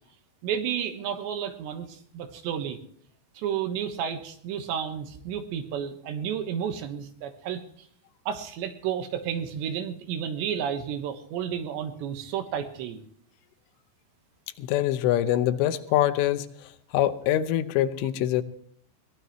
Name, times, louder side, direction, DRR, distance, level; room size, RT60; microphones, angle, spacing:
voice 1, 0.4-2.8 3.3-7.6 8.3-13.0, right 8 dB, 75° right, 7 dB, 3.3 m, -31 dB
voice 2, 14.6-18.4, left 12 dB, 85° left, 11 dB, 3.4 m, -24 dB
22.0 x 18.5 x 3.1 m, 0.64 s
omnidirectional pair, 5.6 m